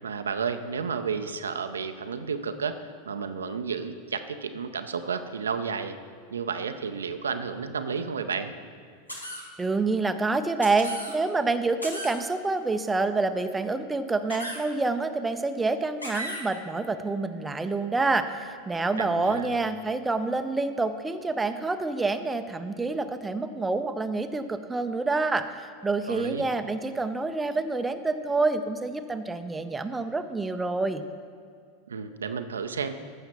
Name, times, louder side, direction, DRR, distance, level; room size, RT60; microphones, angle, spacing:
voice 1, 0.0-6.0 6.3-8.5 19.0-19.5 26.1-26.5 31.9-33.0, right 6 dB, 75° right, 8 dB, 0.5 m, -32 dB
sound 1, 9.1-9.4 10.6-11.1 11.8-12.1 14.3-14.6 16.0-16.4, equal, 90° left, 1.2 m, -35 dB
voice 2, 9.6-31.0, right 3 dB, 10° right, 8 dB, 0.5 m, -27 dB
14.5 x 5.8 x 4.2 m, 2.1 s
figure-of-eight pair, 85°, 0 cm